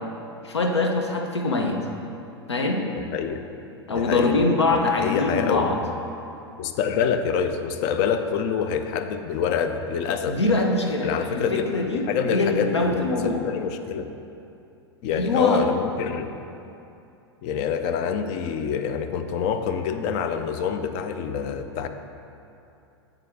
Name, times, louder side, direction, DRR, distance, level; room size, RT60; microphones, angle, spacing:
voice 1, 0.4-1.8 2.5-2.8 3.9-5.8 10.2-13.4 15.1-15.7, left 2 dB, 85° left, 3 dB, 0.7 m, -23 dB
voice 2, 3.1-3.4 3.9-4.4 4.7-5.8 6.6-10.6 11.0-11.6 11.9-14.1 15.0-16.4 17.4-21.9, left 7 dB, 45° left, 8 dB, 0.4 m, -26 dB
8.4 x 3.5 x 3.5 m, 2.8 s
figure-of-eight pair, 95°, 14 cm